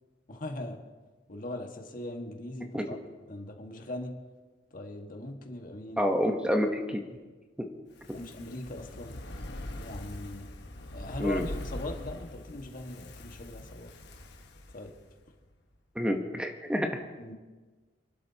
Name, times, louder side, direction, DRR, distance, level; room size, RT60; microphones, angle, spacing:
voice 1, 0.3-0.8 1.3-3.0 3.3-4.1 4.7-6.1 8.1-9.2 9.7-10.5 10.9-13.9 14.7-14.9 17.2-17.3, left 1 dB, 50° left, 3 dB, 1.6 m, -40 dB
voice 2, 6.0-7.0 7.6-7.7 11.2-11.5 16.0-16.9, equal, 5° right, 3 dB, 1.0 m, -28 dB
Fire, 7.9-15.2 15.5-15.6, left 1 dB, 65° left, 1.3 m, -42 dB
28.5 x 12.0 x 2.9 m, 1.3 s
head